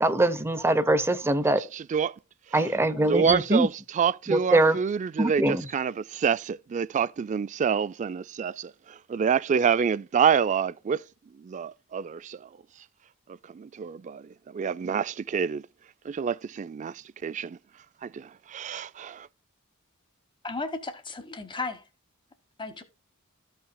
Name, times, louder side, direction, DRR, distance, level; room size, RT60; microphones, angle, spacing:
voice 1, 0.0-1.6 2.5-3.7 4.3-4.8 5.2-5.7, right 1 dB, 10° right, 0.7 m, -23 dB
voice 2, 1.6-2.2 3.1-11.0 11.4-12.5 13.5-15.7 16.1-17.6 18.0-19.3, right 7 dB, 35° right, 0.3 m, -27 dB
voice 3, 20.4-21.8 22.6-22.8, left 3 dB, 20° left, 1.2 m, -35 dB
14.5 x 5.6 x 2.2 m
head